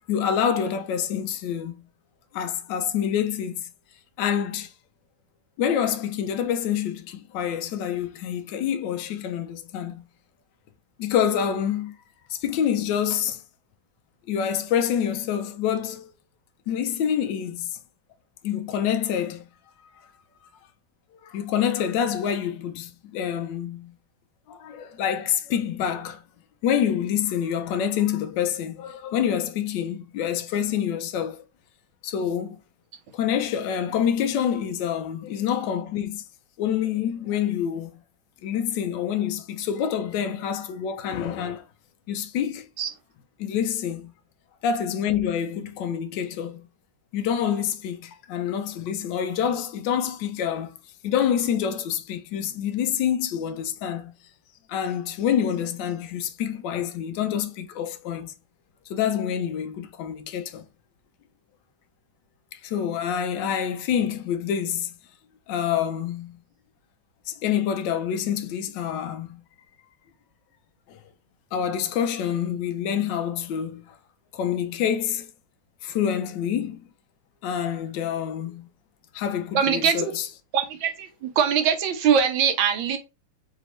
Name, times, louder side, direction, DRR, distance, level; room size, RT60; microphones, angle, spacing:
voice 1, 0.1-1.8 2.3-3.6 4.2-4.7 5.6-10.0 11.0-12.0 12.3-13.4 14.3-16.1 16.7-17.8 18.4-19.4 21.2-23.9 24.5-26.2 26.6-31.4 32.0-32.6 33.1-36.2 36.6-37.9 38.4-41.6 42.1-42.7 43.4-44.1 44.6-46.7 47.1-50.7 51.0-54.1 54.7-58.3 58.9-60.6 62.5-64.9 65.5-66.4 67.3-69.4 70.9-71.0 71.5-73.9 74.3-75.3 75.8-76.8 77.4-78.7 79.1-80.3, left 9 dB, 70° left, 1.2 m, -27 dB
voice 2, 79.5-80.1 80.5-83.0, right 7 dB, 80° right, 1.5 m, -22 dB
4.1 x 2.8 x 3.0 m
omnidirectional pair, 2.2 m